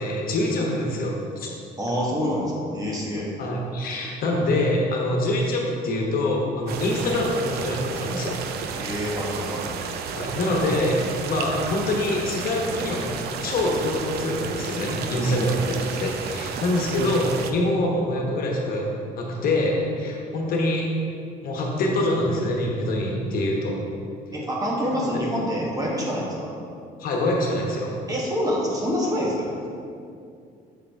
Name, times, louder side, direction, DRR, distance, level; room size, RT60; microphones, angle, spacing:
voice 1, 0.0-1.5 3.4-8.4 10.1-13.1 13.4-18.9 19.2-20.9 21.4-23.8 24.9-25.1 27.0-27.9, left 1 dB, 60° left, -1 dB, 1.2 m, -25 dB
voice 2, 1.8-3.3 8.8-9.7 15.2-15.7 24.3-26.5 28.1-29.5, equal, 20° right, -4 dB, 1.4 m, -27 dB
sound 1, 6.7-17.5, right 6 dB, 70° right, 0.5 m, -32 dB
6.7 x 4.0 x 4.6 m, 2.4 s
cardioid pair, 110°, 17 cm